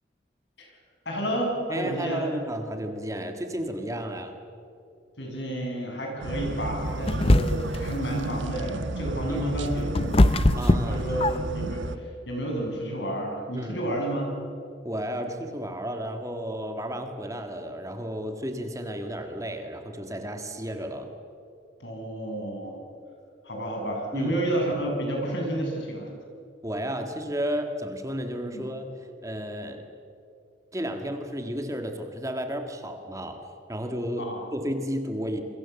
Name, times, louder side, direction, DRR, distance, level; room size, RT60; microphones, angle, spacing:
voice 1, 1.1-2.3 5.2-10.3 10.9-14.3 21.8-22.8 23.4-26.1 28.5-28.6 34.2-34.5, right 1 dB, 70° left, 0 dB, 7.6 m, -30 dB
voice 2, 1.7-4.4 9.3-9.6 10.6-11.0 13.5-13.8 14.8-21.1 24.1-24.3 26.6-29.9 30.7-33.4 33.7-35.4, equal, 15° right, 5 dB, 1.7 m, -33 dB
newyears party, 6.2-12.0, right 2 dB, 85° right, 1.2 m, -32 dB
sound 1, 7.1-7.8 9.4-11.7, left 2 dB, 30° left, 0.6 m, -21 dB
28.0 x 23.0 x 7.1 m, 2.6 s
head